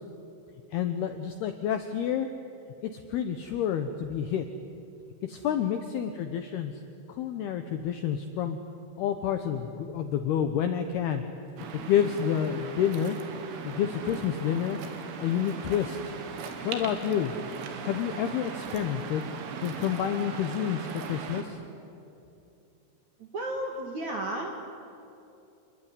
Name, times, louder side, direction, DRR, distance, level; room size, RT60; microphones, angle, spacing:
voice 1, 0.7-2.3 2.8-4.4 5.2-6.7 7.1-8.6 9.0-11.2 11.7-13.2 13.6-14.8 15.2-16.0 16.6-17.3 17.8-19.3 19.6-21.6, left 9 dB, 80° left, 7 dB, 2.3 m, -29 dB
Waves surf, 11.6-21.4, right 6 dB, 75° right, 4.6 m, -39 dB
voice 2, 23.2-24.6, right 1 dB, 55° right, 2 dB, 2.1 m, -33 dB
28.0 x 21.0 x 9.9 m, 2.8 s
omnidirectional pair, 5.9 m